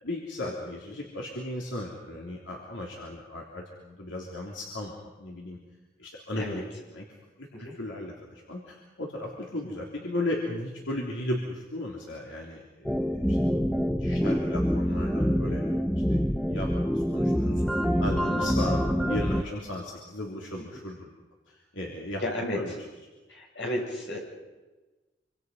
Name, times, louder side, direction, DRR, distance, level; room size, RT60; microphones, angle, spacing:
voice 1, 0.0-5.6 6.0-6.6 6.9-7.0 7.4-16.2 16.5-17.6 18.0-21.1 21.5-22.7, left 1 dB, 85° left, -2 dB, 3.3 m, -36 dB
sound 1, 12.9-19.4, equal, ahead, 0.8 m, -26 dB
voice 2, 22.2-22.6 23.3-24.2, left 1 dB, 65° left, -2 dB, 7.7 m, -33 dB
26.5 x 25.5 x 5.5 m, 1.2 s
head